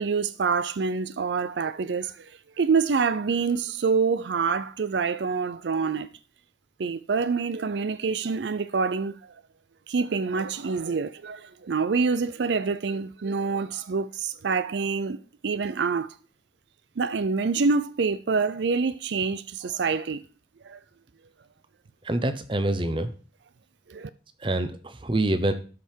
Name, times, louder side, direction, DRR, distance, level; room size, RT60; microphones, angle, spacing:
voice 1, 0.0-6.1 6.8-9.3 9.9-15.2 15.4-16.1 17.0-20.2 20.6-20.8 23.9-24.1, right 5 dB, 75° right, 0.5 m, -26 dB
voice 2, 22.0-23.1 24.4-25.5, right 1 dB, 25° right, 0.9 m, -26 dB
12.5 x 5.6 x 4.5 m
head